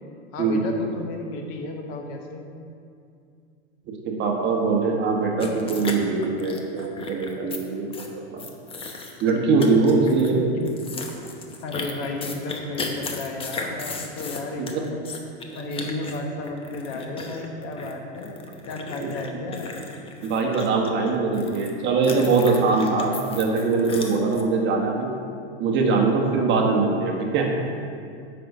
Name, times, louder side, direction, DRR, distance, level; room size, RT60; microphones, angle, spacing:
voice 1, 0.3-2.4 10.2-10.4 11.6-15.0 15.5-18.4 18.7-19.8, left 2 dB, 45° left, 2 dB, 1.2 m, -33 dB
voice 2, 4.0-8.4 9.2-10.5 14.6-14.7 19.0-19.1 20.2-25.1 25.6-27.5, right 4 dB, 35° right, 1 dB, 1.3 m, -22 dB
sound 1, 5.4-7.6 7.9-8.1 8.4-9.3 9.6-10.3 10.6-21.7 22.0-24.4, left 3 dB, 15° left, 0.8 m, -35 dB
7.5 x 5.5 x 6.7 m, 2.4 s
supercardioid pair, 130°, 33 cm